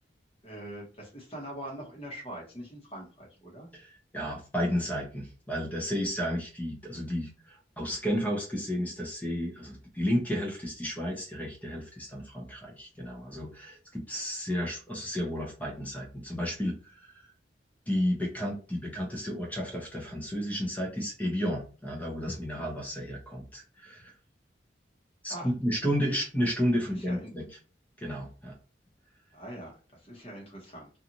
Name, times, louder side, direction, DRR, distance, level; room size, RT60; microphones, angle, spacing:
voice 1, 0.4-3.7 25.3-25.5 26.9-27.3 29.3-30.9, right 1 dB, 30° left, -1 dB, 1.0 m, -43 dB
voice 2, 3.7-17.2 17.9-24.2 25.2-27.5 28.0-28.5, equal, 10° left, -1 dB, 0.8 m, -32 dB
2.6 x 2.4 x 2.9 m, 0.36 s
head